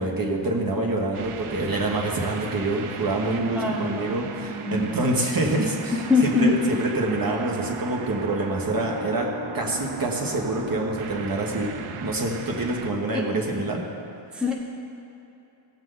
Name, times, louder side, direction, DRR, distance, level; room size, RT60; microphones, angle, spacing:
voice 1, 0.0-9.3 9.5-13.8, right 2 dB, 45° right, 0 dB, 1.5 m, -26 dB
sound 1, 1.1-12.9, right 5 dB, 80° right, 0.8 m, -37 dB
voice 2, 3.5-4.9 6.1-6.5 13.1-13.2 14.3-14.5, left 4 dB, ahead, -2 dB, 1.0 m, -24 dB
17.0 x 8.1 x 3.9 m, 2.7 s
wide cardioid pair, 135°, 49 cm